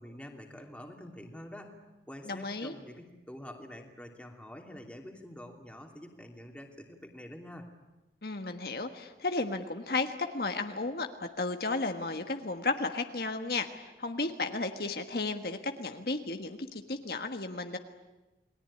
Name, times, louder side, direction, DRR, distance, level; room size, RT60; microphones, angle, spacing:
voice 1, 0.0-1.8 2.1-7.7, left 1 dB, 5° left, 2 dB, 2.8 m, -47 dB
voice 2, 2.2-2.7 8.2-17.8, left 3 dB, 60° left, 6 dB, 1.5 m, -34 dB
29.0 x 20.5 x 9.9 m, 1.1 s
head